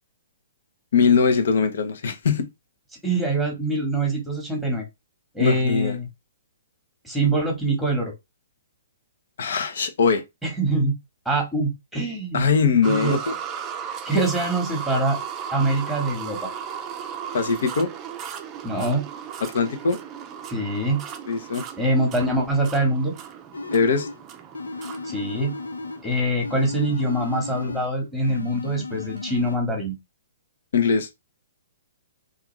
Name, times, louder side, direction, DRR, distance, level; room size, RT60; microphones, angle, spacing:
voice 1, 0.9-2.5 5.4-6.0 9.4-10.2 12.3-13.3 17.3-17.9 19.4-20.0 21.3-21.6 23.7-24.1 30.7-31.1, left 5 dB, 60° left, 0.8 m, -21 dB
voice 2, 3.0-4.8 5.3-6.1 7.0-8.1 10.4-11.0 11.2-12.4 12.8-13.1 14.0-15.2 15.5-16.5 18.6-19.0 20.5-21.0 21.8-23.1 25.0-25.5 26.0-29.9, right 2 dB, ahead, 1.2 m, -24 dB
sound 1, 12.8-27.9 28.6-28.7 29.2-29.3, right 8 dB, 25° right, 0.5 m, -36 dB
sound 2, 23.5-24.2 24.5-26.1 26.4-27.9 28.2-29.6, left 3 dB, 80° left, 0.4 m, -34 dB
3.4 x 2.5 x 3.1 m
figure-of-eight pair, 120°, 0 cm